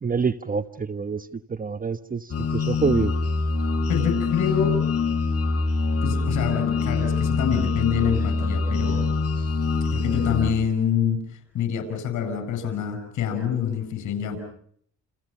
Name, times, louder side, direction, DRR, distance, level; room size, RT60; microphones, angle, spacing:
voice 1, 0.0-3.1, right 5 dB, 30° right, 11 dB, 1.1 m, -27 dB
sound 1, 2.3-10.5, left 4 dB, 55° left, 3.3 m, -24 dB
voice 2, 3.9-4.7 6.0-9.1 9.9-14.4, left 8 dB, 75° left, 8 dB, 8.0 m, -26 dB
29.5 x 29.0 x 5.6 m, 0.65 s
cardioid pair, 90°, 30 cm